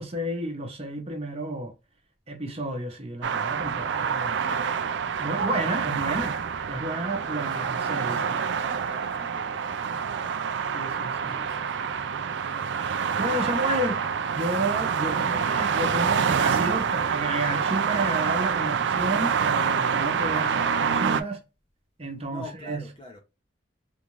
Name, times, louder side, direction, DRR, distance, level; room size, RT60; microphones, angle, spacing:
voice 1, 0.0-1.7 2.3-4.6 5.2-6.4 6.7-8.4 10.7-11.4 13.2-14.0 14.3-21.4 22.0-22.8, right 1 dB, 30° right, 0.9 m, -31 dB
sound 1, 3.2-21.2, right 6 dB, 65° right, 0.4 m, -27 dB
voice 2, 5.4-5.7 6.1-6.2 7.5-10.3 11.3-11.9 13.4-13.7 15.0-15.5 20.4-21.2 22.3-23.2, left 1 dB, 25° left, 0.7 m, -44 dB
3.6 x 2.5 x 3.0 m
head